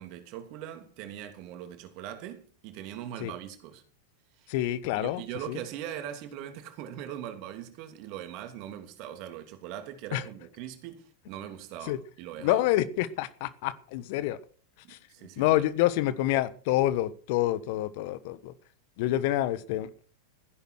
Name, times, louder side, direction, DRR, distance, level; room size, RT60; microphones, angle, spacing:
voice 1, 0.0-3.8 4.4-4.5 5.0-12.6 14.8-15.7, right 11 dB, 50° right, 3.0 m, -41 dB
voice 2, 4.5-5.2 5.5-5.6 10.1-10.2 11.8-12.0 12.4-14.4 14.9-15.0 15.4-18.5 19.0-19.9, left 14 dB, 55° left, 1.2 m, -27 dB
15.0 x 10.5 x 6.4 m
hypercardioid pair, 95°, 0 cm